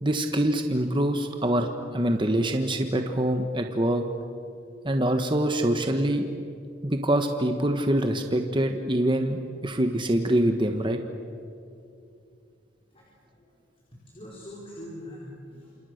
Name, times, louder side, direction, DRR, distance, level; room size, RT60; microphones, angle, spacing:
voice 1, 0.0-1.7 1.9-4.0 4.8-6.3 6.8-11.0, right 1 dB, 25° right, 5 dB, 1.3 m, -25 dB
voice 2, 14.1-15.8, left 1 dB, 30° left, -5 dB, 5.0 m, -43 dB
28.0 x 27.5 x 6.6 m, 2.5 s
head